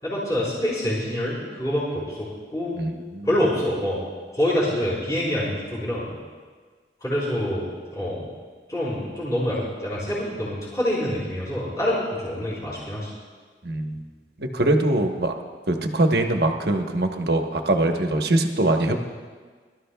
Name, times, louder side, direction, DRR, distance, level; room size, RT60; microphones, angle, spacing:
voice 1, 0.0-2.9 3.2-4.0 4.3-6.1 7.0-8.2 8.7-13.1, left 1 dB, 20° left, -9 dB, 4.1 m, -26 dB
voice 2, 2.8-3.3 13.6-14.0 14.4-15.3 15.7-19.0, right 2 dB, 65° right, 4 dB, 1.0 m, -22 dB
23.5 x 13.0 x 2.3 m, 1.5 s
head